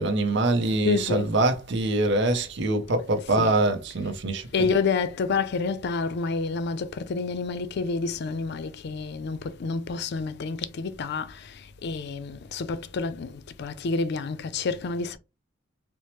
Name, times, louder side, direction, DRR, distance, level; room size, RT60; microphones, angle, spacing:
voice 1, 0.0-4.7, right 2 dB, 65° right, 0.7 m, -24 dB
voice 2, 0.8-1.3 3.1-3.5 4.5-11.5 11.8-15.2, left 4 dB, 60° left, 0.4 m, -29 dB
4.4 x 2.0 x 2.9 m
head